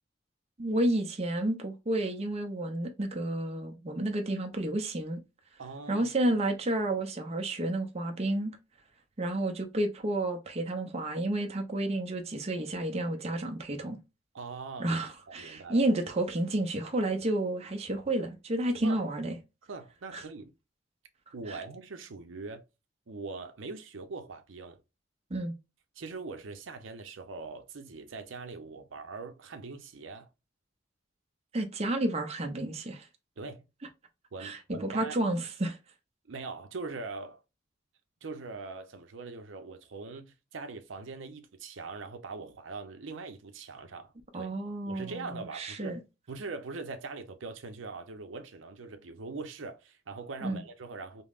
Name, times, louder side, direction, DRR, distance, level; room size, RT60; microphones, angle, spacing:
voice 1, 0.6-5.2 5.9-8.6 9.2-14.0 14.8-19.4 20.1-20.2 21.5-21.6 25.3-25.5 31.5-33.1 34.4-35.8 44.3-46.0 50.4-50.6, right 1 dB, 35° right, 0.6 m, -31 dB
voice 2, 5.6-6.1 14.3-15.0 15.3-15.9 18.8-19.0 19.6-20.5 21.3-22.6 23.1-24.8 26.0-30.3 33.4-33.6 34.3-35.2 36.3-37.4 38.2-44.5 44.9-46.0 46.3-51.2, right 4 dB, 80° right, 0.6 m, -42 dB
5.4 x 2.0 x 2.4 m
head